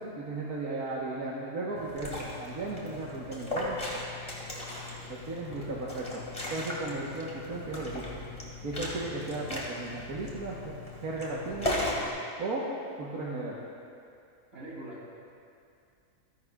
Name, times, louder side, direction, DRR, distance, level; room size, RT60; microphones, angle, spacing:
voice 1, 0.0-3.8 5.3-6.2 6.5-8.1 8.6-10.7 11.0-11.7 12.4-12.6 13.0-13.6, right 2 dB, 90° right, -5 dB, 1.8 m, -35 dB
Liquid, 1.8-12.1, left 1 dB, 25° left, 2.2 m, -37 dB
voice 2, 4.6-5.8 14.5-15.1, right 1 dB, 65° right, -6 dB, 3.8 m, -46 dB
27.5 x 11.0 x 2.4 m, 2.4 s
omnidirectional pair, 1.5 m